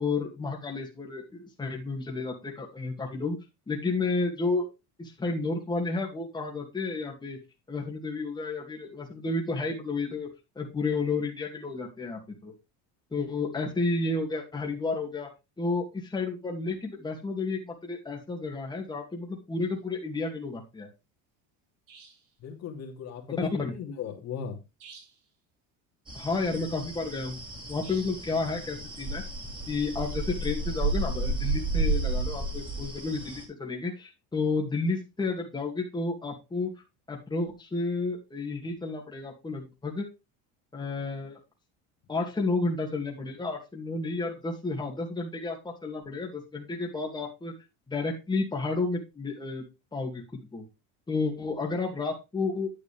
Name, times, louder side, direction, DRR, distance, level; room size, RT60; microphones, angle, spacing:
voice 1, 0.0-3.4 3.7-4.7 5.0-7.4 7.7-10.3 10.6-12.5 13.1-15.3 15.6-20.9 23.4-23.7 26.1-27.4 27.7-29.2 29.7-36.7 37.1-40.1 40.7-41.4 42.1-47.5 47.9-49.6 49.9-50.6 51.1-52.7, left 3 dB, 10° left, -1 dB, 2.3 m, -31 dB
sound 1, 19.6-19.7 21.9-22.3 24.8-25.3 27.8-28.3, right 5 dB, 65° right, 6.3 m, -52 dB
voice 2, 22.4-24.6, left 7 dB, 45° left, 2 dB, 2.7 m, -37 dB
sound 2, 26.1-33.4, right 2 dB, 15° right, 3.1 m, -32 dB
10.0 x 8.2 x 3.4 m, 0.25 s
cardioid pair, 140°, 36 cm